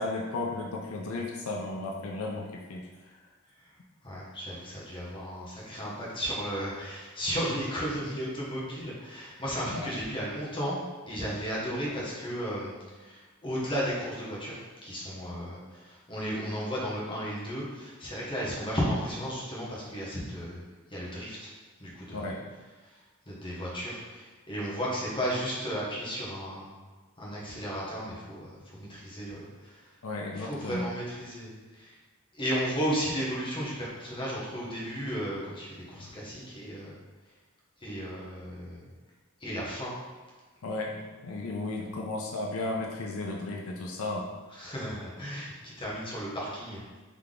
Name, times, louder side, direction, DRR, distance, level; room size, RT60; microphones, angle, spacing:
voice 1, 0.0-3.1 9.7-10.0 22.1-22.4 30.0-30.9 36.0-36.1 40.6-44.3, left 2 dB, 80° left, -1 dB, 0.5 m, -34 dB
voice 2, 4.0-10.8 11.1-12.7 13.0-20.6 20.9-21.5 21.8-22.2 23.3-26.7 27.2-29.8 30.3-31.9 32.3-36.9 37.8-38.8 39.4-39.9 44.5-46.8, equal, 25° left, -6 dB, 1.1 m, -34 dB
3.7 x 3.3 x 3.7 m, 1.3 s
head